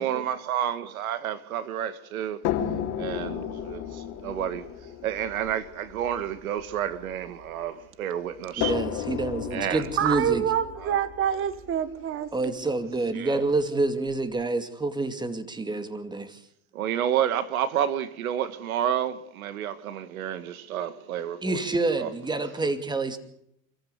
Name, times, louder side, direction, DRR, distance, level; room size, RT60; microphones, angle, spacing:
voice 1, 0.0-2.4 3.0-8.7 9.5-9.9 10.8-11.0 13.1-13.4 16.7-21.7 21.9-22.1, right 10 dB, 80° right, 2.1 m, -30 dB
sound 1, 2.4-7.7 8.6-12.6 13.5-13.6 14.1-14.2, left 10 dB, 45° left, 4.2 m, -34 dB
voice 2, 8.6-10.4 12.3-16.4 21.4-23.2, right 2 dB, 10° right, 2.4 m, -28 dB
voice 3, 10.0-12.6, right 9 dB, 30° right, 1.8 m, -27 dB
27.5 x 14.5 x 8.2 m
supercardioid pair, 120°, 41 cm